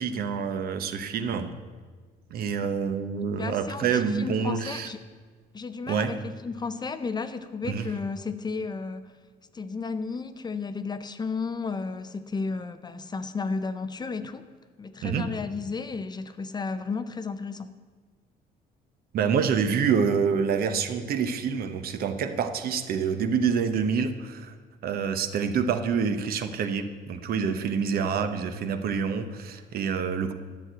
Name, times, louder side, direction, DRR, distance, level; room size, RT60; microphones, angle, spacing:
voice 1, 0.0-1.5 2.3-4.9 5.9-6.1 7.6-7.8 15.0-15.3 19.1-24.5 24.8-30.3, right 6 dB, 60° right, 8 dB, 1.0 m, -27 dB
voice 2, 3.4-5.0 5.5-9.1 9.5-14.4 14.8-17.7, left 4 dB, 25° left, 11 dB, 0.6 m, -33 dB
11.0 x 6.3 x 8.8 m, 1.5 s
cardioid pair, 110°, 17 cm